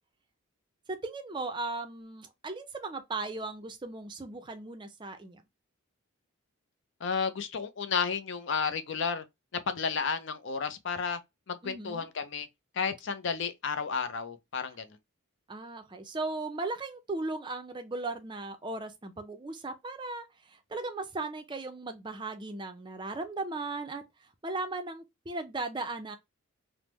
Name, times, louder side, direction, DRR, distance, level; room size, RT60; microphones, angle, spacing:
voice 1, 1.0-5.4 11.6-12.1 15.5-24.0 24.4-26.2, right 3 dB, 20° right, 0.4 m, -37 dB
voice 2, 7.0-9.2 9.7-11.2 11.5-12.5 12.7-14.9, left 6 dB, 55° left, 0.4 m, -32 dB
3.4 x 2.0 x 3.0 m
head